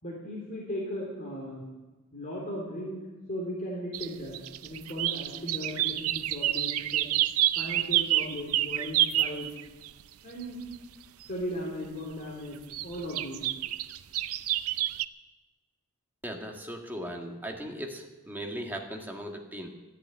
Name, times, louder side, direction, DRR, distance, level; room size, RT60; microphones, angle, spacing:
voice 1, 0.0-1.6 2.1-3.0 3.3-4.4 4.6-7.1 7.5-9.5 10.2-10.6 11.3-13.4, equal, 40° left, -3 dB, 3.3 m, -37 dB
sound 1, 3.9-9.9 10.4-10.5 10.7-10.8 11.2-11.3 12.7-15.1, right 13 dB, 80° right, 0.5 m, -28 dB
voice 2, 16.2-19.7, equal, 10° right, 1 dB, 1.7 m, -38 dB
13.5 x 10.5 x 8.8 m, 1.2 s
head